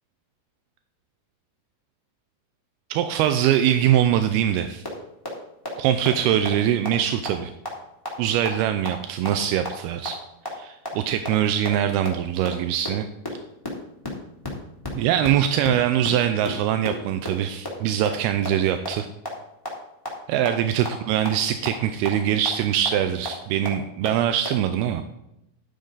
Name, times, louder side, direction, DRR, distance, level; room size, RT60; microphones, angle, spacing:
voice 1, 2.9-4.8 5.8-7.5 8.2-10.2 10.5-13.1 15.0-19.1 20.3-25.0, right 10 dB, 85° right, 9 dB, 2.5 m, -23 dB
sound 1, 4.8-4.9 5.2-5.3 5.6-5.7 6.1-6.2 6.5-6.6 6.9-7.0 7.3-7.4 7.7-7.8 8.1-8.2 8.5-8.6 8.9-9.0 9.3-9.4 9.7-9.8 10.1-10.2 10.5-10.6 10.9-11.0 11.3-11.4 11.6-11.7 12.0-12.1 12.5-12.6 12.8-12.9 13.2-13.3 13.6-13.7 14.0-14.1 14.4-14.5 14.8-14.9 15.2-15.3 15.6-15.7 16.0-16.1 16.5-16.6 16.9-17.0 17.2-17.3 17.7-17.8 18.0-18.1 18.4-18.5 18.8-18.9 19.3-19.4 19.7-19.8 20.1-20.2 20.5-20.6 20.9-21.0 21.3-21.4 21.7-21.8 22.1-22.2 22.5-22.6 22.9-23.0 23.3-23.4 23.7-23.8 24.0-24.1 24.4-24.5, left 1 dB, 5° left, 2.1 m, -30 dB
12.0 x 9.1 x 4.0 m, 0.84 s
omnidirectional pair, 4.4 m